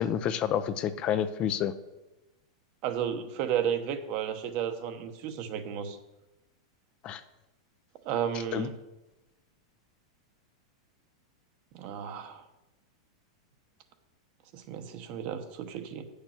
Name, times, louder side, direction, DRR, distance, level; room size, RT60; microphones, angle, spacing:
voice 1, 0.0-1.7 7.0-7.2 8.5-8.7, left 9 dB, 35° left, 12 dB, 0.6 m, -29 dB
voice 2, 2.8-6.0 8.0-8.7 11.7-12.4 14.5-16.0, right 9 dB, 50° right, 8 dB, 1.0 m, -33 dB
8.8 x 6.6 x 6.0 m, 1.0 s
hypercardioid pair, 125°, 3 cm